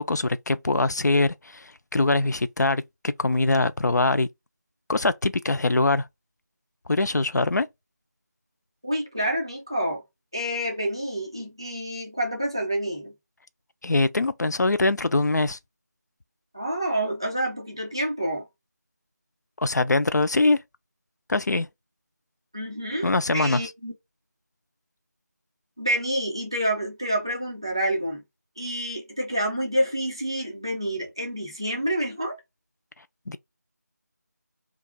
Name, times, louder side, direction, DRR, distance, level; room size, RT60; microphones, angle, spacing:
voice 1, 0.0-4.3 4.9-6.1 6.9-7.7 13.8-15.6 19.6-20.6 21.3-21.7 23.0-23.6 33.3-33.4, left 2 dB, 70° left, 0.4 m, -23 dB
voice 2, 8.8-10.0 10.3-13.1 16.5-18.5 22.5-23.9 25.8-28.2 28.6-32.4, right 1 dB, 15° right, 0.4 m, -28 dB
2.4 x 2.3 x 4.0 m
figure-of-eight pair, 170°, 9 cm